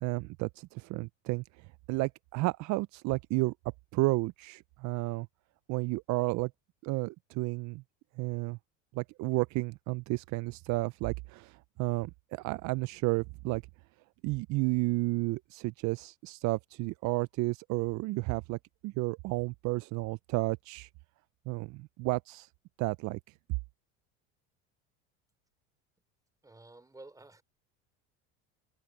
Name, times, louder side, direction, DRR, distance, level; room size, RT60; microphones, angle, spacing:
voice 1, 0.0-3.5 3.9-5.3 5.7-6.5 6.8-7.8 8.2-8.6 8.9-13.6 14.2-18.6 18.8-20.9 21.5-22.5 22.8-23.2, right 23 dB, 55° right, 0.6 m, -32 dB
voice 2, 26.4-27.4, right 2 dB, 10° right, 3.5 m, -52 dB
supercardioid pair, 90°, 35 cm